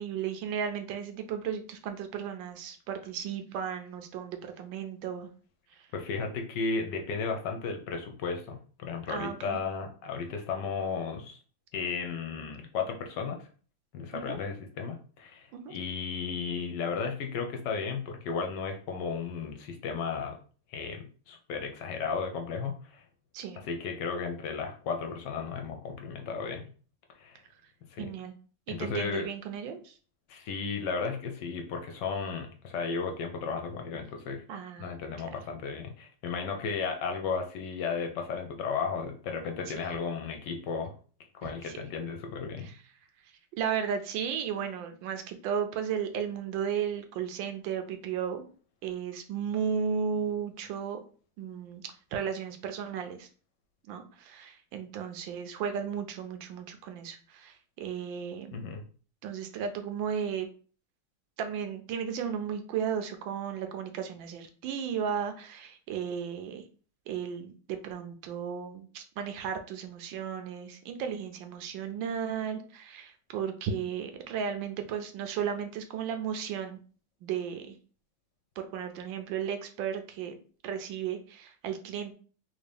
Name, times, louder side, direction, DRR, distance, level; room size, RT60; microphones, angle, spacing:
voice 1, 0.0-5.3 9.1-9.6 14.1-14.4 15.5-15.7 23.3-23.6 28.0-28.3 28.7-29.9 34.5-34.9 39.7-39.8 41.4-41.8 42.6-42.7 43.6-48.4 48.8-51.0 51.4-51.8 52.1-53.3 53.9-58.7 59.2-60.5 61.4-66.6 67.1-76.8 77.2-77.7 78.6-80.4 80.6-82.1, right 7 dB, 80° right, 7 dB, 1.3 m, -34 dB
voice 2, 5.9-11.4 11.7-13.4 13.9-20.4 20.7-23.0 23.5-26.7 27.2-27.4 27.9-28.1 28.7-29.3 30.3-34.4 34.8-40.9 41.4-42.7 58.5-58.8, left 5 dB, 70° left, 4 dB, 1.1 m, -34 dB
3.4 x 2.7 x 3.3 m, 0.40 s
omnidirectional pair, 2.1 m